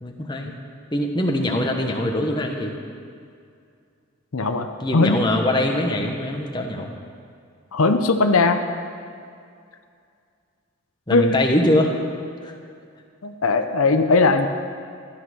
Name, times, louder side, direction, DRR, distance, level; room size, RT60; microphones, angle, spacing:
voice 1, 0.0-0.5 0.9-2.7 4.8-6.9 11.1-11.9 12.4-12.5, left 1 dB, 20° left, 2 dB, 1.1 m, -22 dB
voice 2, 4.3-4.7 4.9-5.2 7.7-8.6 11.1-11.4 13.2-14.5, left 3 dB, 80° left, 7 dB, 0.7 m, -19 dB
14.0 x 10.5 x 6.1 m, 2.3 s
head